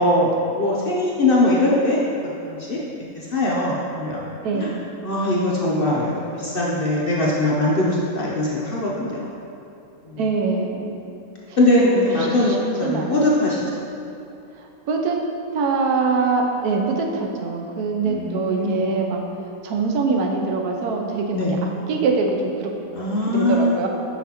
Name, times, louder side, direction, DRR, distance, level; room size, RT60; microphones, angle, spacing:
voice 1, 0.0-2.0 2.4-2.8 3.3-4.7 5.0-6.1 6.4-9.2 10.1-10.2 11.6-13.6 18.0-18.9 21.3-21.6 22.9-23.8, left 1 dB, 50° left, -5 dB, 0.7 m, -21 dB
voice 2, 4.4-4.8 10.2-10.9 11.8-13.2 14.9-15.2 15.5-19.2 19.6-21.5 21.9-22.7 23.3-23.9, right 4 dB, 90° right, 2 dB, 1.2 m, -23 dB
6.4 x 5.8 x 2.9 m, 2.7 s
omnidirectional pair, 1.6 m